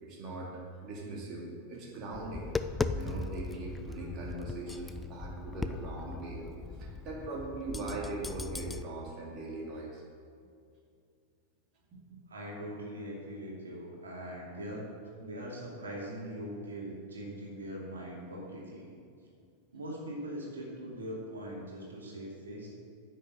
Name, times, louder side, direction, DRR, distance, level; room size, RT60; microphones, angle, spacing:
voice 1, 0.0-2.5 2.9-6.4 6.8-10.0 11.9-12.2, right 2 dB, 35° right, -3 dB, 2.6 m, -40 dB
Tap, 2.1-8.8, left 3 dB, 10° left, 0.4 m, -38 dB
voice 2, 12.3-14.9 15.2-18.9 19.7-22.7, equal, 70° right, -4 dB, 2.5 m, -41 dB
9.9 x 6.7 x 7.7 m, 2.3 s
figure-of-eight pair, 90°, 0 cm